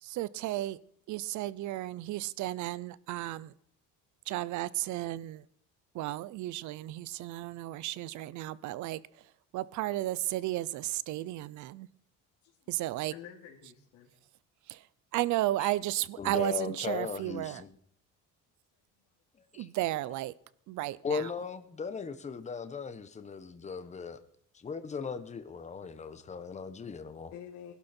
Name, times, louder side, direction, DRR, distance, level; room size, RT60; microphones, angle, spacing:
voice 1, 0.0-0.8 1.1-3.5 4.3-5.4 5.9-9.0 9.5-11.9 12.7-13.1 14.7-14.8 15.1-17.6 19.5-20.3 20.7-21.3, right 15 dB, 70° right, 0.7 m, -33 dB
voice 2, 12.4-12.8 13.1-14.2 27.3-27.7, left 9 dB, 80° left, 2.9 m, -48 dB
voice 3, 16.2-17.8 19.4-19.7 21.0-24.2 24.5-27.3, left 5 dB, 20° left, 1.3 m, -38 dB
20.5 x 12.0 x 4.5 m
cardioid pair, 155°, 31 cm